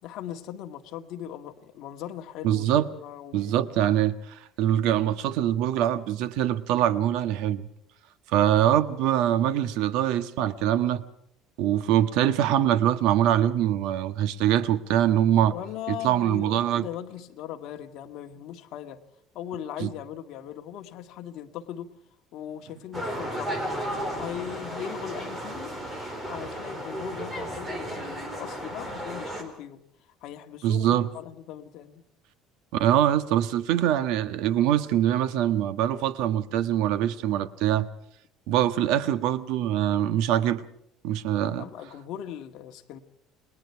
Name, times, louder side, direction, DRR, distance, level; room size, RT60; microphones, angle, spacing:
voice 1, 0.0-2.7 3.0-3.6 15.4-19.0 19.3-21.9 22.3-23.7 24.1-25.7 26.2-29.8 30.2-32.0 41.6-43.0, left 10 dB, 55° left, 1.9 m, -39 dB
voice 2, 2.4-2.9 3.3-7.7 8.3-11.0 11.6-15.5 16.0-16.9 19.8-19.9 30.6-31.1 32.7-37.9 38.5-40.6 41.0-41.6, right 11 dB, 70° right, 1.4 m, -23 dB
sound 1, 22.9-29.4, right 1 dB, 15° right, 4.3 m, -34 dB
29.0 x 21.5 x 4.7 m
cardioid pair, 160°, 0 cm